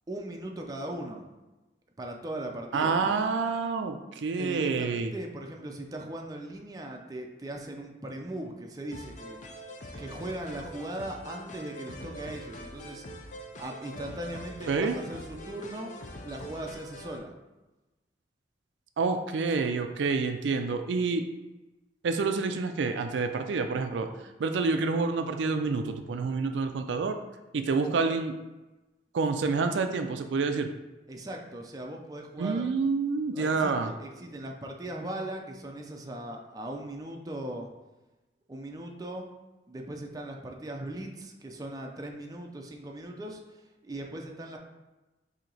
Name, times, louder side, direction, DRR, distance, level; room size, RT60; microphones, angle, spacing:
voice 1, 0.1-1.3 2.0-3.2 4.3-9.4 10.0-13.1 13.6-15.9 16.2-17.3 31.1-32.7 33.3-37.7 38.5-39.3 39.7-44.6, right 1 dB, 20° right, 1 dB, 0.5 m, -39 dB
voice 2, 2.7-5.1 14.7-15.0 19.0-21.3 22.0-24.1 24.4-27.2 27.5-28.4 29.1-30.7 32.4-33.9, right 4 dB, 85° right, 6 dB, 0.4 m, -28 dB
sound 1, 8.9-17.2, equal, 45° left, 0.5 m, -44 dB
4.4 x 2.8 x 3.9 m, 1.1 s
head